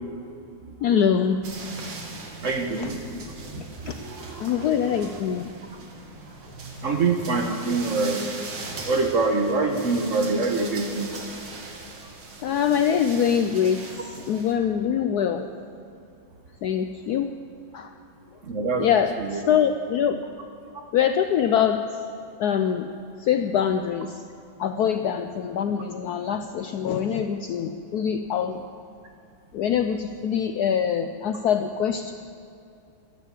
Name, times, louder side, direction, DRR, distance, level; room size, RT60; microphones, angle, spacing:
voice 1, 0.8-1.4 2.8-2.9 3.9-4.0 4.4-5.4 12.4-13.8 14.3-15.5 16.6-17.3 17.7-17.9 18.8-20.2 20.9-21.8 22.4-22.9 23.2-24.1 24.6-28.6 29.5-32.1, left 8 dB, 75° left, 8 dB, 0.9 m, -24 dB
sound 1, 1.4-14.5, right 3 dB, 80° right, 2.5 m, -40 dB
voice 2, 2.4-5.0 6.8-8.2 8.9-11.1 18.4-18.9 19.2-19.4 20.1-20.2, right 3 dB, 45° right, 3 dB, 1.2 m, -26 dB
12.5 x 11.5 x 8.3 m, 2.6 s
omnidirectional pair, 2.2 m